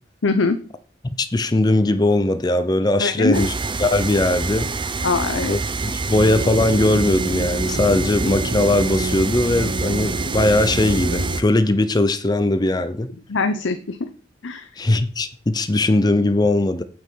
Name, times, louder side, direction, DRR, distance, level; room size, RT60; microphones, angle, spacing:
voice 1, 0.2-0.6 3.0-3.5 5.0-5.6 13.3-14.0 14.4-14.7, left 3 dB, 75° left, 0.7 m, -21 dB
voice 2, 1.1-3.5 3.8-4.7 5.5-13.1 14.8-16.8, left 2 dB, 20° left, 0.5 m, -19 dB
sound 1, 3.3-11.4, right 3 dB, 25° right, 0.5 m, -27 dB
sound 2, 6.1-11.4, right 2 dB, 80° right, 1.3 m, -28 dB
8.8 x 5.5 x 6.2 m
head